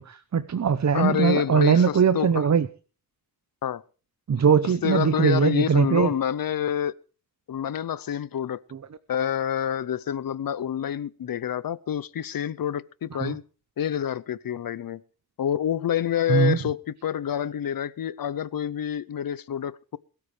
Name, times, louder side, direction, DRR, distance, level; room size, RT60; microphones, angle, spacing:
voice 1, 0.0-2.7 4.3-6.1 13.2-13.3 16.3-16.6, right 7 dB, 45° right, 0.8 m, -21 dB
voice 2, 0.9-2.5 3.6-3.8 4.6-6.9 7.5-8.6 9.1-13.4 13.8-15.0 15.4-20.0, left 9 dB, 65° left, 0.7 m, -27 dB
21.5 x 13.0 x 3.3 m
wide cardioid pair, 120°, 37 cm